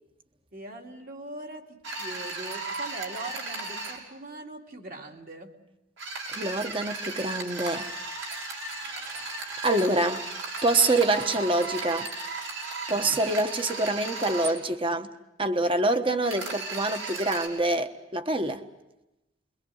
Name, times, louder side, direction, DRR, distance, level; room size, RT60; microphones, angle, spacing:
voice 1, 0.5-5.5 12.9-13.2, right 2 dB, 45° right, 2.6 m, -41 dB
sound 1, 1.8-4.0 6.0-14.5 16.2-17.5, right 3 dB, 80° right, 6.2 m, -35 dB
voice 2, 6.3-7.9 9.6-10.3 10.6-12.1 12.9-15.1 15.4-18.6, right 2 dB, 25° right, 1.3 m, -26 dB
29.5 x 23.0 x 6.5 m
head